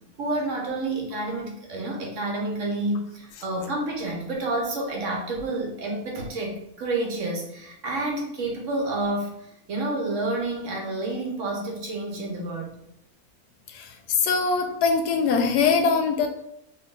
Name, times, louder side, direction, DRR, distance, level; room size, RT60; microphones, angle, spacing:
voice 1, 0.2-12.7, right 2 dB, 60° right, 0 dB, 1.0 m, -29 dB
voice 2, 14.2-16.3, left 5 dB, 85° left, 4 dB, 1.1 m, -22 dB
3.0 x 2.5 x 3.7 m, 0.75 s
omnidirectional pair, 1.6 m